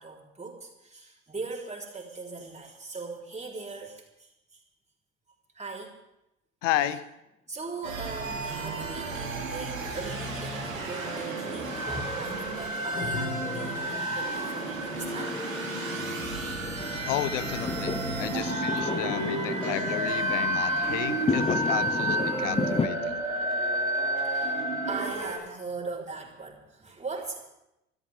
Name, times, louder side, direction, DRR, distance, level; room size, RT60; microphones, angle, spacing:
voice 1, 0.0-4.6 5.5-6.0 7.5-15.4 18.3-18.4 24.2-27.5, right 3 dB, 15° right, -2 dB, 4.1 m, -39 dB
voice 2, 6.6-7.1 13.4-14.0 17.1-23.2, left 13 dB, 65° left, 16 dB, 0.9 m, -33 dB
sound 1, 7.8-25.4, right 2 dB, 90° right, 2.2 m, -31 dB
Fireworks, 8.3-22.9, left 5 dB, 15° left, 0.7 m, -35 dB
sound 2, 12.9-14.4, left 4 dB, 50° left, 4.5 m, -37 dB
28.0 x 13.0 x 3.6 m, 0.89 s
figure-of-eight pair, 55°, 39 cm